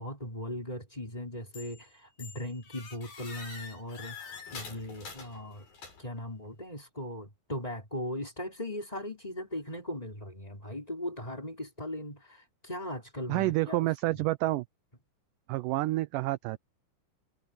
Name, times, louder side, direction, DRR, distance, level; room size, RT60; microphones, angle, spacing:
voice 1, 0.0-5.7 6.0-14.2, left 1 dB, 10° left, 5.0 m, -39 dB
sound 1, 1.5-1.9 2.2-6.2, left 5 dB, 75° left, 8.5 m, -46 dB
voice 2, 13.3-14.6 15.5-16.6, right 18 dB, 80° right, 1.9 m, -28 dB
omnidirectional pair, 4.3 m